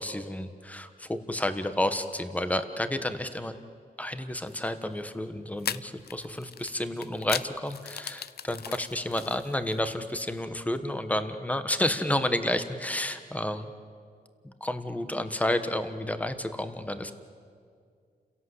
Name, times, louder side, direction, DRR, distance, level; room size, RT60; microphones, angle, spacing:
voice 1, 0.0-3.5 4.0-13.7 14.4-17.1, left 1 dB, 10° left, 10 dB, 1.3 m, -31 dB
sound 1, 4.5-4.7 5.6-9.9, left 9 dB, 75° left, 0.6 m, -37 dB
30.0 x 17.0 x 8.1 m, 2.2 s
wide cardioid pair, 110°, 17 cm